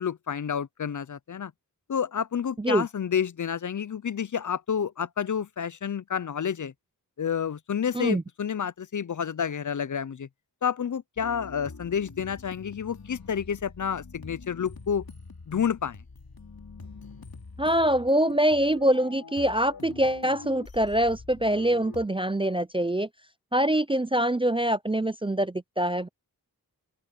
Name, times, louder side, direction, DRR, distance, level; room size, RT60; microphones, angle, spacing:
voice 1, 0.0-1.5 1.9-6.7 7.2-10.3 10.6-15.0 15.5-16.0, left 7 dB, 55° left, 0.5 m, -29 dB
sound 1, 11.2-22.1, left 4 dB, 70° left, 2.8 m, -44 dB
voice 2, 17.6-23.1 23.5-26.1, right 1 dB, 15° right, 0.4 m, -24 dB
open air
wide cardioid pair, 55°, 37 cm